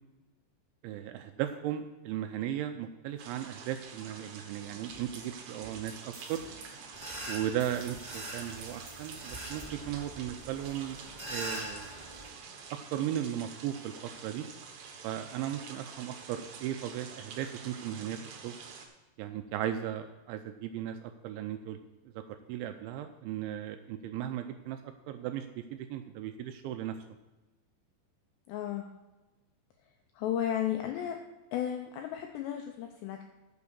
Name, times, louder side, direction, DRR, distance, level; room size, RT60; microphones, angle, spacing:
voice 1, 0.8-6.4 7.3-11.0 11.3-11.9 12.7-14.5 15.0-18.5 19.2-21.0 21.2-21.8 22.1-27.0, right 11 dB, 85° right, 7 dB, 2.7 m, -36 dB
sound 1, 3.2-18.9, right 5 dB, 65° right, 3.0 m, -48 dB
sound 2, 4.5-9.6, right 3 dB, 50° right, 3.9 m, -52 dB
sound 3, 6.9-12.3, right 1 dB, 25° right, 0.9 m, -43 dB
voice 2, 28.5-28.9 30.1-31.2 31.5-33.2, left 10 dB, 85° left, 4 dB, 2.5 m, -33 dB
9.6 x 7.3 x 7.0 m, 1.1 s
omnidirectional pair, 5.8 m